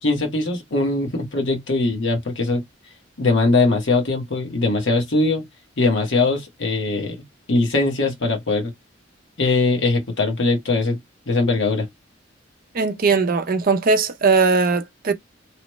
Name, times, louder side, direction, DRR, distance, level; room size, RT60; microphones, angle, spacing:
voice 1, 0.0-2.6 3.2-5.4 5.8-7.2 7.5-8.7 9.4-11.0 11.3-11.9, left 3 dB, 65° left, 1.1 m, -21 dB
voice 2, 12.7-15.1, right 4 dB, 45° right, 0.5 m, -19 dB
3.0 x 2.1 x 3.0 m
head